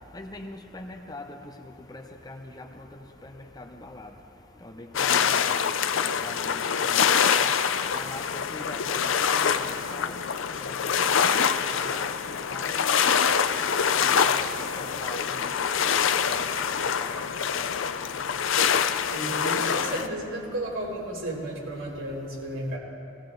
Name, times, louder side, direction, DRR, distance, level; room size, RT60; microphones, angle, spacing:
voice 1, 0.1-1.3 1.9-2.7 3.2-4.1 4.6-5.2 5.4-5.5 6.2-6.5 6.8-7.4 7.9-9.0 9.3-10.2 10.6-12.1 12.5-13.0 13.9-14.4 14.8-15.5 16.3-17.3, left 2 dB, 20° left, 5 dB, 0.7 m, -42 dB
sound 1, 4.9-20.1, left 7 dB, 70° left, 0.5 m, -25 dB
voice 2, 19.1-22.8, right 1 dB, 85° right, -3 dB, 3.7 m, -33 dB
18.5 x 16.5 x 3.9 m, 2.7 s
head